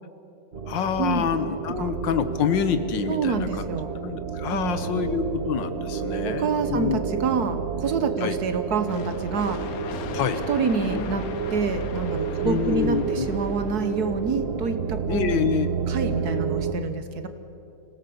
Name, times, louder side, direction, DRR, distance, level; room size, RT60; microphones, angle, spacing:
sound 1, 0.5-16.7, right 6 dB, 45° right, 1.0 m, -30 dB
voice 1, 0.7-3.5 4.0-7.0 8.2-8.4 10.1-10.4 10.9-11.1 12.5-13.3 15.1-15.7, left 7 dB, 80° left, 10 dB, 1.8 m, -26 dB
voice 2, 3.1-3.9 4.5-5.0 6.2-9.6 10.5-15.4 15.9-17.3, right 5 dB, 60° right, 9 dB, 1.6 m, -27 dB
sound 2, 8.8-14.4, left 7 dB, 60° left, 1.2 m, -39 dB
25.5 x 17.0 x 7.0 m, 2.8 s
omnidirectional pair, 1.9 m